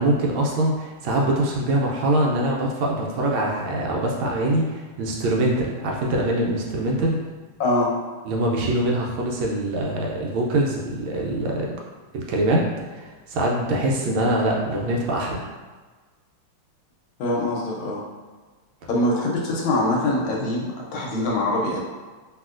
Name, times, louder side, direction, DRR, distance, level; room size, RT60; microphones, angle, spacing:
voice 1, 0.0-7.2 8.2-11.7 12.1-12.6 12.9-15.4, right 1 dB, 75° right, -2 dB, 1.3 m, -23 dB
voice 2, 7.6-7.9 17.2-18.0 18.9-21.8, left 1 dB, 75° left, -2 dB, 1.4 m, -23 dB
3.0 x 2.8 x 2.4 m, 1.4 s
omnidirectional pair, 2.3 m